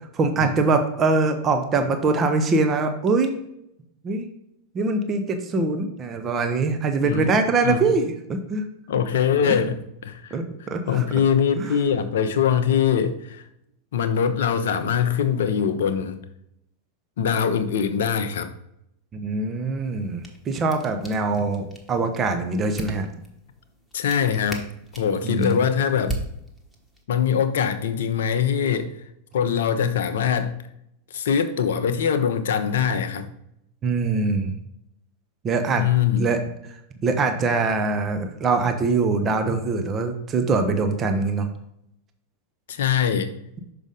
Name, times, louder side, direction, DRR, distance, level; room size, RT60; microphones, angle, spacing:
voice 1, 0.1-3.3 4.0-4.3 4.7-8.6 9.4-9.6 10.3-11.0 11.5-11.7 19.1-23.1 25.2-25.6 33.8-34.6 35.4-35.8 36.2-36.4 37.0-41.5, right 3 dB, 25° right, 6 dB, 0.8 m, -23 dB
voice 2, 8.9-10.4 10.9-13.4 13.9-16.2 17.2-18.5 23.9-24.6 24.9-26.1 27.1-28.9 29.3-30.6 31.1-33.3 35.8-36.3 42.7-43.3, left 7 dB, 60° left, 9 dB, 0.6 m, -22 dB
sound 1, 19.9-27.0, right 2 dB, ahead, 1.2 m, -39 dB
6.3 x 5.1 x 3.7 m, 0.77 s
figure-of-eight pair, 90°, 0 cm